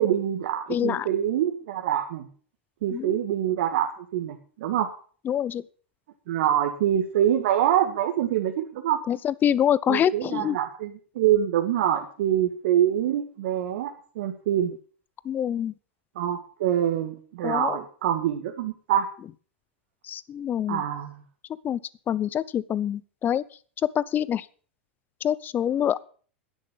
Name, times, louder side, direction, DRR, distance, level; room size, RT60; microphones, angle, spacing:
voice 1, 0.0-2.3 2.8-4.9 6.3-9.0 9.9-14.7 16.2-19.1 20.7-21.2, right 11 dB, 65° right, 2 dB, 1.9 m, -25 dB
voice 2, 0.7-1.1 2.9-3.2 5.2-5.6 9.1-10.6 15.2-15.7 17.4-17.8 20.0-20.8 21.6-21.8 22.1-23.4 23.9-24.5 25.2-26.0, left 9 dB, 30° left, 20 dB, 0.7 m, -25 dB
10.5 x 10.5 x 7.1 m, 0.43 s
hypercardioid pair, 95°, 6 cm